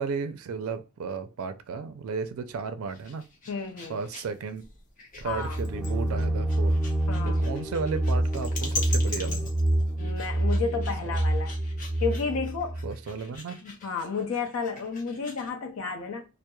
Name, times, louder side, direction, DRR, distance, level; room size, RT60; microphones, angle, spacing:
voice 1, 0.0-3.2 3.8-4.6 5.2-6.8 7.2-9.5 11.0-11.2 12.8-13.6, right 5 dB, 80° right, 0.4 m, -34 dB
sound 1, 2.8-15.5, left 3 dB, 40° left, 0.7 m, -41 dB
voice 2, 3.5-4.0 5.2-5.6 7.1-7.4 10.0-11.5 12.0-12.8 13.6-16.2, left 5 dB, 75° left, 0.5 m, -32 dB
sound 2, 5.3-13.0, right 1 dB, ahead, 0.4 m, -27 dB
2.2 x 2.0 x 2.9 m
head